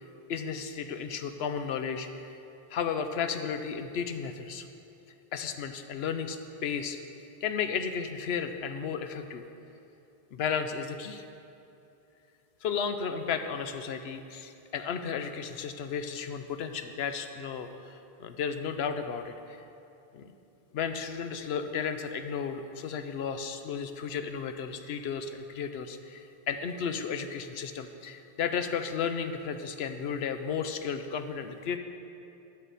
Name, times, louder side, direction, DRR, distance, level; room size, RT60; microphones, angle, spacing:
voice 1, 0.3-2.4 2.7-4.7 5.3-7.0 7.4-9.4 10.3-11.2 12.6-19.6 20.1-20.3 20.7-31.8, left 6 dB, 90° left, 8 dB, 0.9 m, -34 dB
12.5 x 6.6 x 4.1 m, 2.8 s
omnidirectional pair, 1.0 m